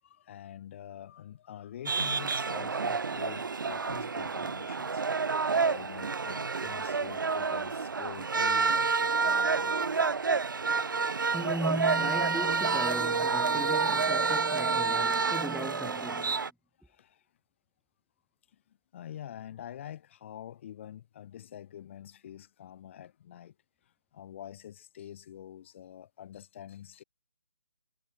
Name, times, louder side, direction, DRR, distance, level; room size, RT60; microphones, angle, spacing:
voice 1, 0.0-5.0 5.7-10.0 16.8-17.2 18.7-23.5 23.8-27.0, left 10 dB, 35° left, 7.9 m, -46 dB
sound 1, 1.9-16.5, right 4 dB, 70° right, 0.7 m, -29 dB
voice 2, 11.3-16.4, right 1 dB, ahead, 2.0 m, -37 dB
figure-of-eight pair, 150°, 11 cm